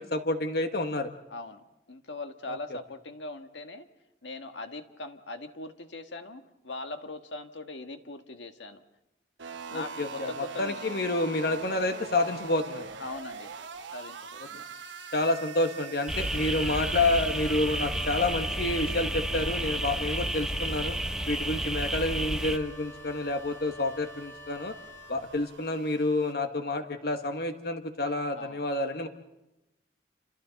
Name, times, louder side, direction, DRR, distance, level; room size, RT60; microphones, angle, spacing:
voice 1, 0.0-1.1 9.7-12.9 15.1-21.0 21.3-24.7 25.1-29.1, left 2 dB, 55° left, 7 dB, 1.3 m, -29 dB
voice 2, 1.3-1.6 1.9-3.9 4.2-8.8 9.7-11.0 13.0-13.5 13.9-14.7 28.3-28.6, left 2 dB, 85° left, 6 dB, 1.6 m, -41 dB
sound 1, 9.4-26.3, right 5 dB, 85° right, 1.2 m, -45 dB
sound 2, 16.1-22.6, right 1 dB, 5° right, 0.8 m, -31 dB
Wind instrument woodwind instrument, 16.2-25.7, right 1 dB, 15° left, 2.9 m, -48 dB
29.0 x 27.0 x 4.1 m, 0.97 s
head